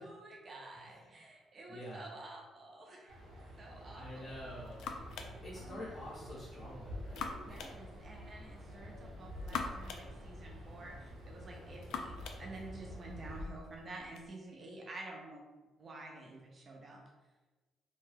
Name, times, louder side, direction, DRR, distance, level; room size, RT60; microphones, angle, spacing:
voice 1, 0.0-3.2 3.6-4.3 5.6-5.9 7.5-15.4 15.8-17.0, right 2 dB, 35° right, 0 dB, 0.6 m, -50 dB
voice 2, 0.7-1.2 1.7-2.1 3.9-4.8 5.4-7.6 13.2-13.6, left 1 dB, 20° left, -6 dB, 0.7 m, -48 dB
sound 1, 3.1-13.5, equal, 85° right, 0.8 m, -49 dB
sound 2, 4.1-14.3, left 5 dB, 85° left, 0.3 m, -47 dB
2.8 x 2.2 x 3.3 m, 1.2 s
cardioid pair, 145°, 0 cm